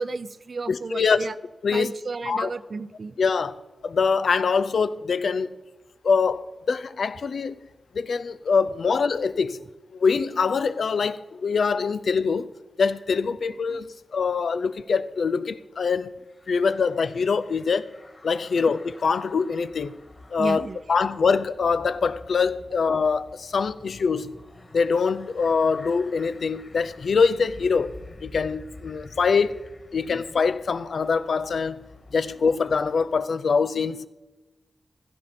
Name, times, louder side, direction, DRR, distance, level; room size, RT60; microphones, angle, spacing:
voice 1, 0.0-1.3 1.7-3.2 18.6-18.7 20.4-20.8, right 4 dB, 65° right, 0.6 m, -32 dB
voice 2, 0.7-1.2 1.6-1.9 2.3-2.5 3.2-3.5 3.8-5.5 6.0-7.6 7.9-9.6 9.9-12.5 12.8-16.2 16.5-17.9 18.2-20.0 20.3-24.4 24.7-29.6 29.9-34.1, left 5 dB, 80° left, 0.5 m, -24 dB
sound 1, 16.2-33.2, left 2 dB, 40° left, 2.5 m, -49 dB
15.5 x 14.0 x 4.3 m
wide cardioid pair, 75°, 0 cm